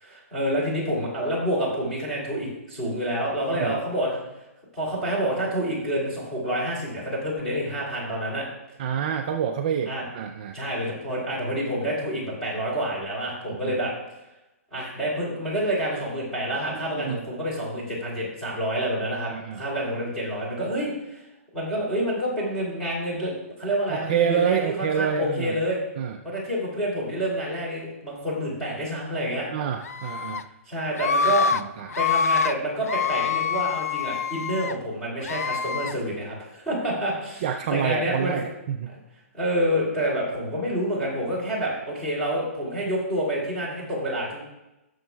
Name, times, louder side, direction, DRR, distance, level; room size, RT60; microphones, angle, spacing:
voice 1, 0.0-4.2 4.7-8.5 9.9-10.1 10.5-13.9 14.7-21.2 21.5-25.8 26.2-29.5 30.7-31.5 31.9-37.4 37.7-38.4 39.3-44.4, equal, 5° left, -7 dB, 3.0 m, -28 dB
voice 2, 8.8-10.6 13.5-13.8 16.9-17.3 19.3-19.6 23.9-25.6 26.0-26.2 29.5-30.5 31.5-31.9 37.4-38.9, right 8 dB, 30° right, 4 dB, 0.4 m, -27 dB
Screaming, 29.8-30.4 30.9-31.6 31.9-32.5 32.9-34.7 35.2-35.9, left 6 dB, 90° left, 0.5 m, -25 dB
16.5 x 6.9 x 2.3 m, 0.94 s
hypercardioid pair, 175°, 8 cm